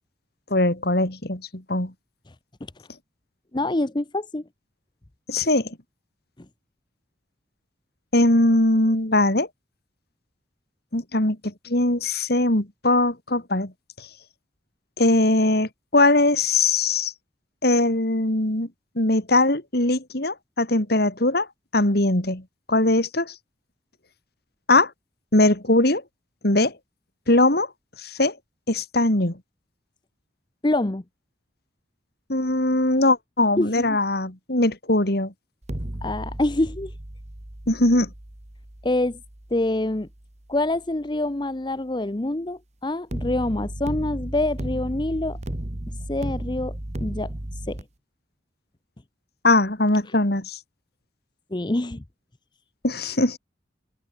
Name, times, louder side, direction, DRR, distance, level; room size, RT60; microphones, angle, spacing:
voice 1, 0.5-1.9 5.3-5.8 8.1-9.5 10.9-13.7 14.0-14.1 15.0-17.1 17.6-18.7 18.9-21.5 21.7-22.4 22.7-23.3 24.7-24.9 25.3-26.0 26.4-26.7 27.3-27.7 28.0-28.4 28.7-29.3 32.3-35.3 37.7-38.1 49.4-50.6 52.8-53.4, left 2 dB, 55° left, 3.3 m, -21 dB
voice 2, 3.5-4.4 30.6-31.0 33.6-34.0 36.0-36.9 38.8-39.2 39.5-40.1 40.5-45.4 46.1-47.3 47.7-47.8 51.5-52.0, left 1 dB, 25° left, 0.8 m, -26 dB
sound 1, 35.6-40.7 43.1-47.8, right 1 dB, 35° right, 1.7 m, -34 dB
head